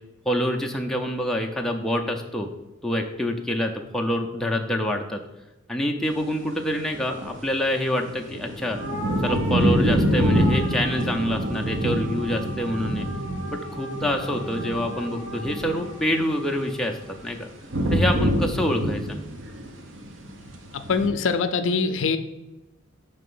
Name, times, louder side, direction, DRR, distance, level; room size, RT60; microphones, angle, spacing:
voice 1, 0.3-2.5 2.8-5.2 5.7-8.8 9.2-13.1 13.5-17.5 17.9-19.2, equal, ahead, 1 dB, 0.4 m, -26 dB
sound 1, 6.0-6.1 6.4-7.4 8.0-16.5 16.9-21.1, equal, 65° right, 0.8 m, -26 dB
sound 2, 8.7-17.3, right 2 dB, 85° right, 1.2 m, -38 dB
voice 2, 20.7-22.2, left 4 dB, 65° left, 9 dB, 0.4 m, -23 dB
5.8 x 3.3 x 5.4 m, 1.0 s
head